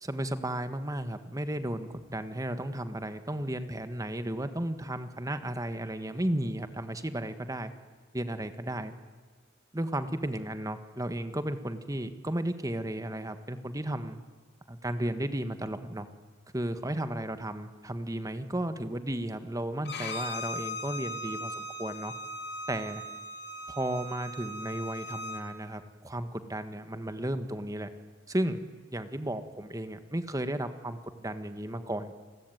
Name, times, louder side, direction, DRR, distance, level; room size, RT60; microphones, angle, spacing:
voice 1, 0.0-7.7 8.1-8.9 9.7-14.2 14.7-16.1 16.5-22.1 22.7-23.0 23.7-27.9 28.3-28.6 28.9-32.1, right 1 dB, 20° right, 9 dB, 1.6 m, -34 dB
Bowed string instrument, 19.8-25.4, left 1 dB, 60° left, 3.3 m, -38 dB
29.5 x 21.5 x 9.3 m, 1.4 s
head